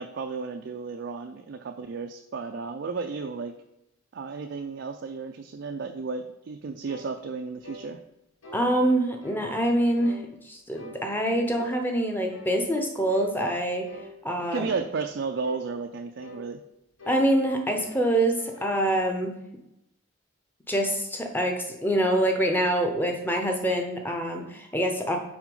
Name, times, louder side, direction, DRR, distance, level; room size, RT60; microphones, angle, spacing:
voice 1, 0.0-3.6 4.1-8.0 14.5-16.6, right 4 dB, 55° right, 5 dB, 0.4 m, -33 dB
sound 1, 6.9-7.1 7.6-7.9 8.4-8.7 9.2-9.4 10.0-10.2 10.8-11.0 11.5-11.8 12.3-12.6 13.1-13.3 13.9-14.1 14.6-14.9 15.4-15.7 16.2-16.4 17.0-17.2 17.8-18.0 18.4-18.8, equal, 80° left, 1.6 m, -44 dB
voice 2, 8.5-10.2 10.4-13.9 14.2-14.7 17.1-19.4 20.7-25.2, right 1 dB, 10° left, 3 dB, 0.7 m, -25 dB
6.0 x 4.2 x 5.3 m, 0.86 s
head